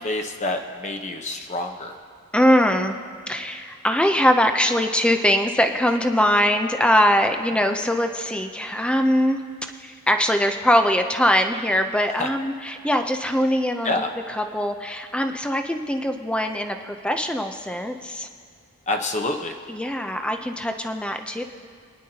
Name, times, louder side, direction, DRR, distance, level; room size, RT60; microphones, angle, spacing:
voice 1, 0.0-1.9 12.2-12.3 13.8-14.1 18.9-19.5, left 2 dB, 30° left, 4 dB, 1.0 m, -27 dB
voice 2, 2.3-3.0 3.3-9.4 9.8-14.0 14.3-18.3 19.7-21.4, equal, 5° left, 5 dB, 0.6 m, -22 dB
29.0 x 10.5 x 2.9 m, 2.3 s
head